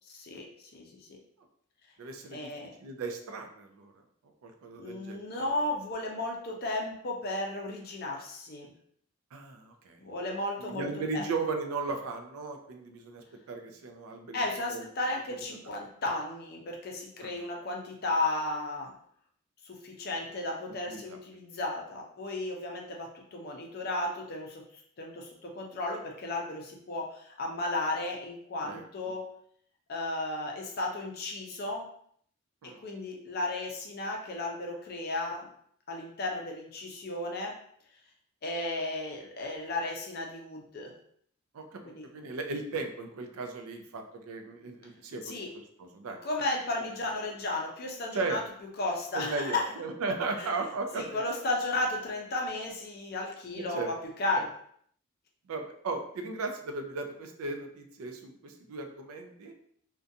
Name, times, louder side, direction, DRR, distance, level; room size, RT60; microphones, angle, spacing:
voice 1, 0.2-1.1 2.3-2.7 4.8-8.7 10.0-10.9 11.1-11.3 14.3-18.9 19.6-24.6 25.0-29.3 29.9-31.9 32.6-35.5 35.9-37.6 38.4-40.9 41.8-42.0 45.2-45.5 46.2-48.4 48.8-49.7 50.4-50.5 50.9-54.5, left 2 dB, 45° left, 0 dB, 0.5 m, -34 dB
voice 2, 2.0-2.5 2.8-3.9 4.4-5.2 9.3-10.0 10.6-14.4 14.7-14.8 17.2-17.4 20.9-21.0 28.6-28.9 32.6-32.8 41.5-45.4 45.8-46.2 48.1-48.4 49.1-51.2 53.6-53.9 54.3-54.4 55.5-59.5, right 3 dB, 75° right, 5 dB, 0.4 m, -36 dB
2.5 x 2.2 x 2.6 m, 0.65 s
head